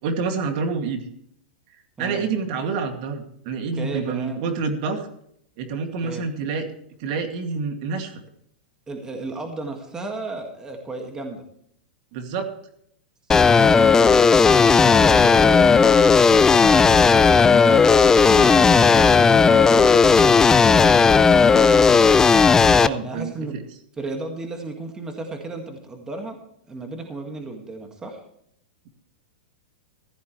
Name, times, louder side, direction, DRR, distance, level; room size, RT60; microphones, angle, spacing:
voice 1, 0.0-1.0 2.0-5.1 5.6-6.7 7.0-8.2 12.1-12.5 22.8-23.6, right 5 dB, 50° right, 5 dB, 2.3 m, -27 dB
voice 2, 3.8-4.4 6.0-6.3 8.9-11.4 13.4-17.2 17.6-22.2 23.0-23.6 24.0-26.4 26.7-28.2, right 2 dB, 10° right, 3 dB, 1.8 m, -34 dB
sound 1, 13.3-22.9, left 5 dB, 10° left, 0.4 m, -14 dB
15.5 x 12.5 x 3.2 m, 0.69 s
supercardioid pair, 155°, 5 cm